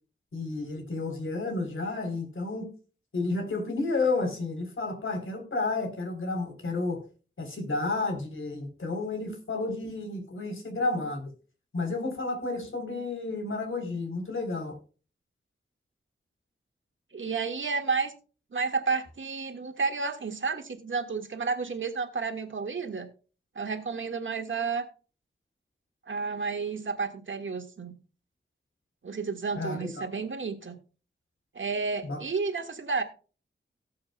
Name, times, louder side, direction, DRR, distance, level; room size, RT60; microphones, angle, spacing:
voice 1, 0.3-2.7 3.1-7.0 7.4-11.3 11.7-14.8 29.6-30.1 32.0-32.2, left 3 dB, 80° left, 4 dB, 3.6 m, -31 dB
voice 2, 17.1-18.1 18.5-23.1 23.5-24.9 26.1-27.9 29.0-30.8 31.5-33.0, right 4 dB, 75° right, 6 dB, 1.7 m, -31 dB
18.0 x 7.6 x 2.2 m, 0.36 s
wide cardioid pair, 95°, 20 cm